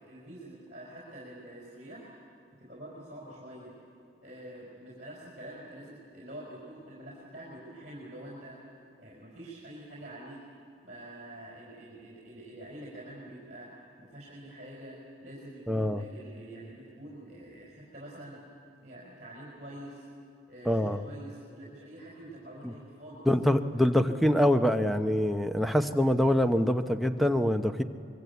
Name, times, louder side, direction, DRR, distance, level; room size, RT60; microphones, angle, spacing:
voice 1, 0.0-2.1 2.6-3.7 4.2-8.6 9.0-10.4 10.8-13.7 14.0-18.4 18.8-20.0 20.5-23.2 23.7-23.9, right 1 dB, 40° right, -4 dB, 4.8 m, -46 dB
voice 2, 15.7-16.0 20.7-21.0 22.6-22.7 23.3-27.8, equal, ahead, 8 dB, 0.8 m, -25 dB
25.0 x 22.0 x 8.3 m, 2.7 s
head